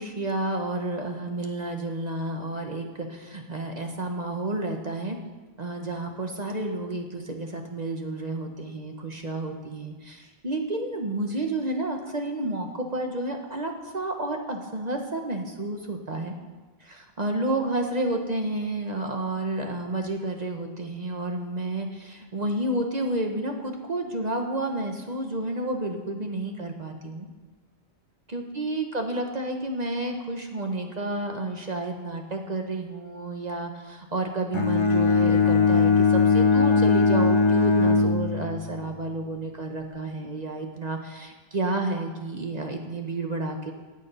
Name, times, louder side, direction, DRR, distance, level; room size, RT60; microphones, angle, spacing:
voice 1, 0.0-5.2 5.6-16.3 16.8-27.3 28.3-43.7, right 2 dB, 40° right, 3 dB, 1.2 m, -30 dB
Bowed string instrument, 34.5-38.8, left 4 dB, 30° left, 0.7 m, -20 dB
19.0 x 6.7 x 5.5 m, 1.3 s
omnidirectional pair, 1.1 m